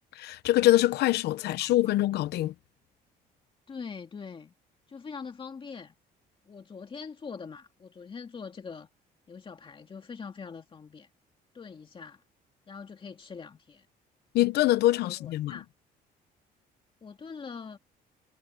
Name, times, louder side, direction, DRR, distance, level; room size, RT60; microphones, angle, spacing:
voice 1, 0.2-2.5 14.3-15.6, left 15 dB, 75° left, 0.9 m, -24 dB
voice 2, 1.6-1.9 3.7-4.5 4.9-5.9 6.5-8.9 9.3-11.1 11.5-12.2 12.7-13.9 15.0-15.7 17.0-17.8, left 5 dB, 30° left, 2.3 m, -43 dB
cardioid pair, 110°, 17 cm